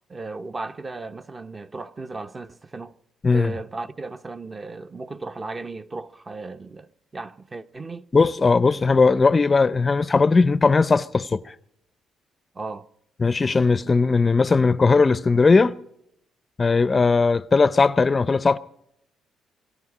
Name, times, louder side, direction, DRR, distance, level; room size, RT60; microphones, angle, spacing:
voice 1, 0.1-2.9 3.3-8.1 12.5-12.9, right 3 dB, 30° right, 0.7 m, -35 dB
voice 2, 8.1-11.5 13.2-15.7 16.6-18.6, left 4 dB, 30° left, 0.5 m, -18 dB
24.5 x 11.5 x 4.9 m
cardioid pair, 90°, 0 cm